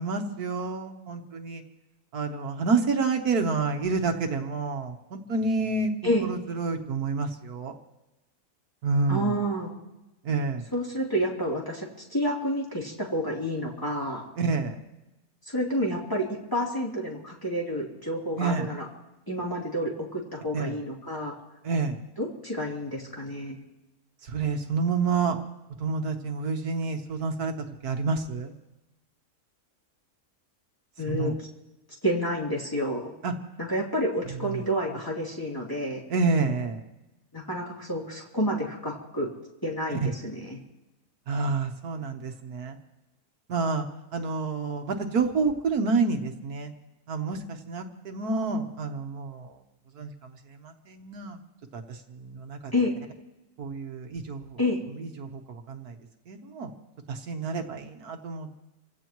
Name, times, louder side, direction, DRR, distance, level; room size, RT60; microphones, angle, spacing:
voice 1, 0.0-1.6 2.1-5.9 6.2-7.7 8.8-9.3 10.2-10.7 14.4-14.7 18.4-18.7 20.5-20.8 21.6-22.0 24.2-25.4 25.8-27.5 27.8-28.5 31.1-31.3 33.2-33.3 34.4-34.5 36.1-36.8 39.9-40.1 41.3-42.8 43.5-43.8 44.1-46.7 47.1-49.6 49.9-50.3 50.6-51.4 51.7-52.7 53.6-54.6 55.0-56.0 56.3-56.7 57.1-58.5, right 4 dB, 75° right, 5 dB, 1.7 m, -28 dB
voice 2, 9.1-9.7 10.7-14.2 15.5-18.9 19.3-21.3 22.2-23.6 31.0-31.3 32.0-33.1 33.7-36.0 37.3-39.3 39.6-40.6 52.7-52.9 54.6-54.8, equal, 15° left, -4 dB, 3.1 m, -29 dB
28.0 x 16.5 x 3.1 m, 0.99 s
omnidirectional pair, 1.6 m